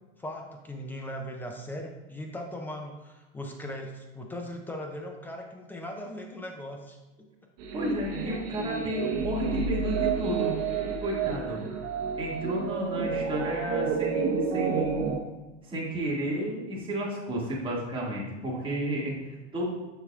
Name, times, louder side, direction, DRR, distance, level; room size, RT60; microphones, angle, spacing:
voice 1, 0.2-7.3, equal, 5° left, 2 dB, 0.3 m, -39 dB
sound 1, 7.6-15.2, right 6 dB, 40° right, 1.0 m, -30 dB
voice 2, 7.7-10.5 11.0-11.6 12.2-15.2 15.6-19.7, right 1 dB, 15° right, -4 dB, 1.8 m, -32 dB
6.5 x 6.4 x 2.4 m, 1.1 s
hypercardioid pair, 125°, 37 cm